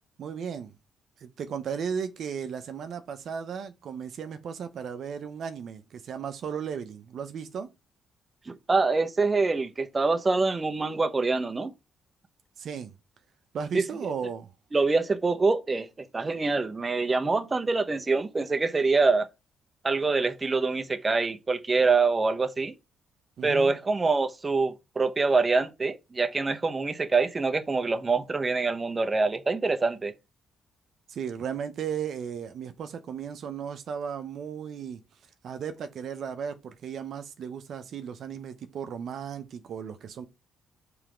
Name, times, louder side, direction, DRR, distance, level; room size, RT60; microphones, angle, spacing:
voice 1, 0.2-0.7 1.2-7.7 12.6-12.9 13.5-14.5 23.4-23.7 31.1-35.0 35.4-40.3, right 7 dB, 65° right, 0.7 m, -35 dB
voice 2, 8.5-11.7 13.7-13.8 14.7-15.9 16.1-19.3 19.8-22.7 23.4-30.1, right 3 dB, 25° right, 0.8 m, -25 dB
5.7 x 3.4 x 5.0 m
cardioid pair, 90°, 0 cm